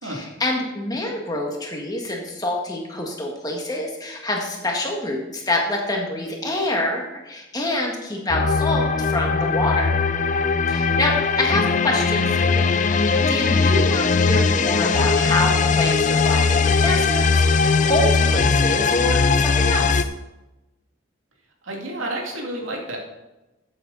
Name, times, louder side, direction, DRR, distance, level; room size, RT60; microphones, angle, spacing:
voice 1, 0.0-10.0 10.7-20.1, left 1 dB, 20° left, 0 dB, 1.8 m, -26 dB
sound 1, 8.3-20.0, left 4 dB, 40° left, 0.5 m, -19 dB
voice 2, 21.6-23.0, right 1 dB, 80° right, -1 dB, 2.5 m, -31 dB
13.5 x 8.0 x 4.1 m, 1.0 s
head